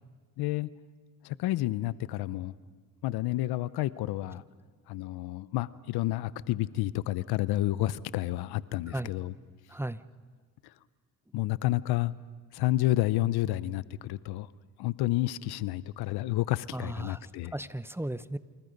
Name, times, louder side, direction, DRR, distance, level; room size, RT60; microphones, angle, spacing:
voice 1, 0.4-0.7 1.2-2.5 3.0-4.4 4.9-9.3 11.3-12.1 12.5-14.5 14.8-17.5, left 16 dB, 85° left, 18 dB, 0.7 m, -30 dB
voice 2, 9.7-10.0 16.7-18.4, right 1 dB, 5° right, 15 dB, 0.7 m, -36 dB
28.5 x 26.0 x 5.3 m, 1.5 s
supercardioid pair, 70°, 37 cm